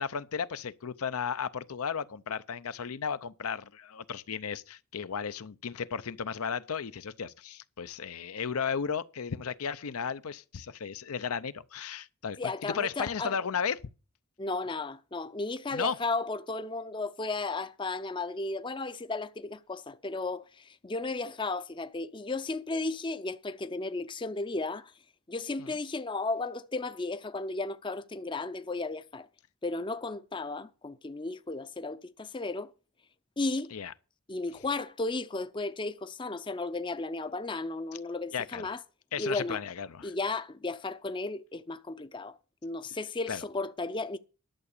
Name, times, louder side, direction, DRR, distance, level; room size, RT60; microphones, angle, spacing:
voice 1, 0.0-13.8 15.7-16.0 25.6-25.8 33.7-33.9 38.3-38.7 39.1-40.1 43.3-43.4, left 6 dB, 80° left, 0.6 m, -34 dB
voice 2, 12.4-13.4 14.4-24.9 25.3-29.3 29.6-32.7 33.4-33.7 34.3-38.8 39.2-39.6 40.0-42.4 42.6-44.2, left 3 dB, 20° left, 0.5 m, -34 dB
11.5 x 6.9 x 6.6 m
head